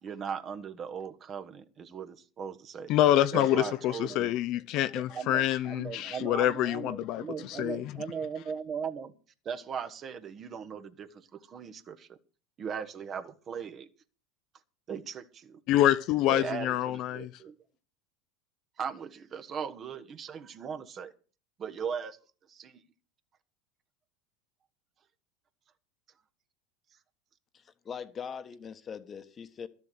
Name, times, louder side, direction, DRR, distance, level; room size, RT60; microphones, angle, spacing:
voice 1, 0.0-2.9 3.3-4.4 4.9-9.1 9.4-12.2 12.6-13.9 14.9-15.6 16.3-17.5 18.8-21.1 21.6-22.2 22.5-22.8, right 7 dB, 35° right, 1.3 m, -38 dB
voice 2, 2.9-7.9 15.7-17.3, left 13 dB, 50° left, 0.6 m, -26 dB
voice 3, 27.5-29.7, left 7 dB, 30° left, 1.2 m, -41 dB
13.0 x 7.1 x 8.1 m
hypercardioid pair, 80°, 0 cm